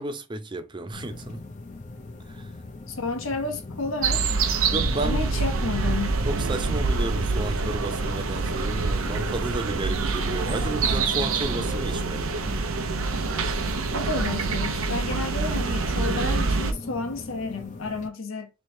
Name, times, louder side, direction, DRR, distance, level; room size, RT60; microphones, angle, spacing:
voice 1, 0.0-1.4 2.2-2.5 4.6-5.3 6.2-12.4, right 2 dB, 20° right, 0.5 m, -32 dB
sound 1, 0.9-18.1, left 2 dB, 35° left, 0.6 m, -41 dB
voice 2, 2.9-4.3 4.6-6.2 13.9-18.5, left 3 dB, 75° left, 1.0 m, -31 dB
sound 2, 4.0-16.7, right 4 dB, 80° right, 0.7 m, -26 dB
3.3 x 3.3 x 4.3 m
head